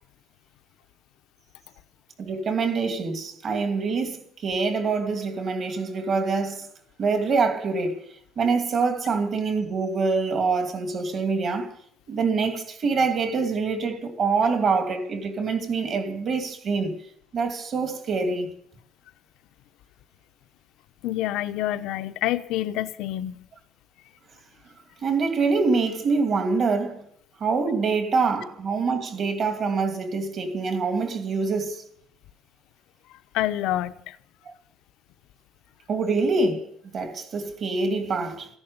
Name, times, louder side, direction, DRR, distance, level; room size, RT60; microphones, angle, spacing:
voice 1, 2.2-6.7 7.0-8.0 8.4-11.7 12.1-17.0 17.3-18.5 25.0-27.0 27.4-31.8 34.5-34.6 35.9-36.6 36.9-38.5, right 4 dB, 40° right, 2.6 m, -25 dB
voice 2, 21.0-23.5 33.3-34.2, left 14 dB, 85° left, 0.9 m, -27 dB
14.5 x 11.0 x 8.1 m
cardioid pair, 170°, 0 cm